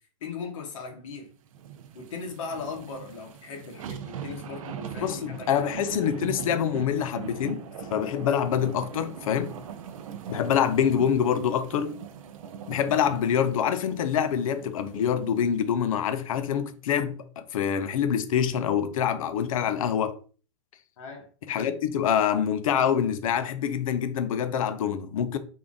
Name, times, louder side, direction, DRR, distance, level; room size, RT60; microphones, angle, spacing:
voice 1, 0.2-1.3 1.9-5.7 21.0-21.3 21.5-21.8, left 5 dB, 70° left, 1.3 m, -38 dB
sound 1, 1.5-16.0 16.4-16.5, right 8 dB, 85° right, 0.5 m, -41 dB
voice 2, 5.0-9.5 10.3-12.0 12.7-20.2 21.5-25.4, left 8 dB, 90° left, 0.5 m, -26 dB
3.7 x 2.5 x 3.5 m
supercardioid pair, 150°, 17 cm